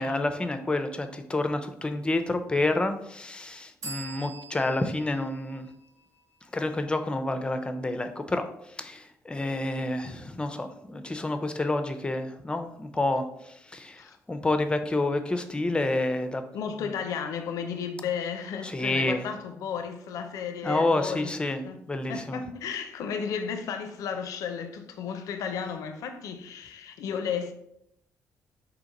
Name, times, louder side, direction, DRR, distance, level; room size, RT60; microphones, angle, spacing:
voice 1, 0.0-5.7 6.5-16.4 18.6-19.2 20.6-21.6 21.9-22.4, left 2 dB, 15° left, 0.4 m, -29 dB
sound 1, 3.8-7.4, right 3 dB, 70° right, 0.9 m, -45 dB
voice 2, 16.5-21.3 21.6-21.8 22.1-27.5, left 7 dB, 85° left, 0.4 m, -33 dB
3.8 x 2.9 x 4.0 m
cardioid pair, 105°, 6 cm